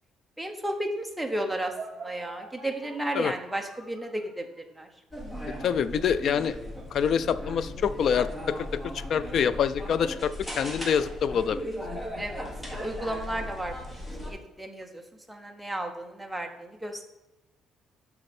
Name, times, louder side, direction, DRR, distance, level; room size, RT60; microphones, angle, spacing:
voice 1, 0.4-4.9 12.2-15.0 15.3-17.1, right 1 dB, 5° right, 3 dB, 0.7 m, -34 dB
sound 1, 1.2-4.7, right 3 dB, 20° right, 1.4 m, -45 dB
sound 2, 5.1-14.3, left 1 dB, 10° left, 1.3 m, -37 dB
voice 2, 5.4-6.6 6.9-11.7, left 7 dB, 45° left, 14 dB, 0.3 m, -26 dB
6.5 x 6.0 x 4.2 m, 1.0 s
cardioid pair, 175°, 0 cm